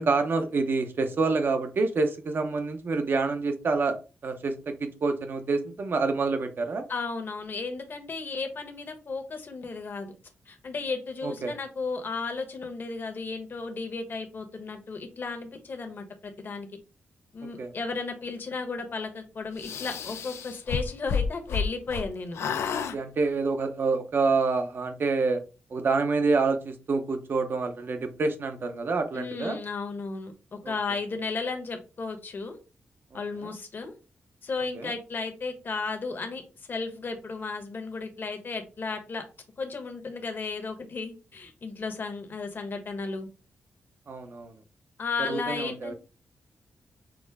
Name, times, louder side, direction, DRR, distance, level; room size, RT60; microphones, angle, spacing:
voice 1, 0.0-3.9 4.2-6.8 11.2-11.5 17.6-17.7 22.7-25.4 25.7-29.6 30.6-30.7 33.4-33.5 34.7-34.9 44.1-44.5 45.2-45.9, right 4 dB, 55° right, 6 dB, 0.8 m, -27 dB
voice 2, 6.9-10.1 10.5-16.7 17.3-22.4 29.1-32.6 33.1-33.9 34.4-36.4 36.7-39.2 39.6-43.3 45.0-45.9, left 4 dB, 50° left, 5 dB, 1.1 m, -34 dB
sound 1, 19.6-22.1 22.3-23.0, left 6 dB, 90° left, 0.4 m, -30 dB
6.1 x 2.1 x 3.5 m, 0.32 s
cardioid pair, 95°, 4 cm